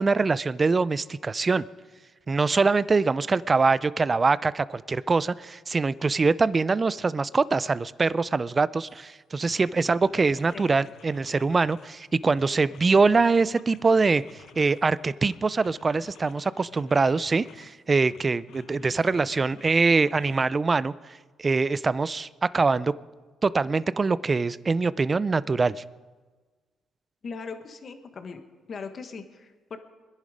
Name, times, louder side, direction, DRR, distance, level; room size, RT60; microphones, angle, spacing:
voice 1, 0.0-1.7 2.3-20.9 21.4-22.9 23.4-25.8, right 4 dB, 30° right, 18 dB, 0.4 m, -23 dB
sound 1, 8.9-9.0 9.4-12.0 12.3-14.9 15.2-17.7 18.1-20.5, left 7 dB, 75° left, 0.9 m, -52 dB
voice 2, 27.2-28.4 28.7-29.8, left 5 dB, 45° left, 7 dB, 1.5 m, -39 dB
23.0 x 11.0 x 5.1 m, 1.4 s
cardioid pair, 90°, 0 cm